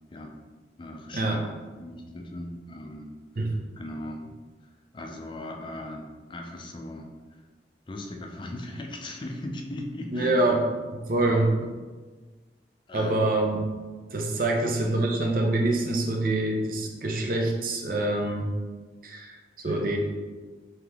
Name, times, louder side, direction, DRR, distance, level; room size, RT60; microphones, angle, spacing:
voice 1, 0.8-1.4 1.8-4.3 4.6-7.5 7.9-10.5 11.2-11.8 12.9-13.2 14.4-14.5 14.8-15.1 19.6-19.9, left 1 dB, 25° left, 2 dB, 0.4 m, -39 dB
voice 2, 10.1-10.7 10.9-11.7 12.9-13.7 14.1-18.5 19.0-20.0, right 2 dB, 50° right, 0 dB, 0.6 m, -25 dB
3.3 x 2.9 x 3.5 m, 1.3 s
head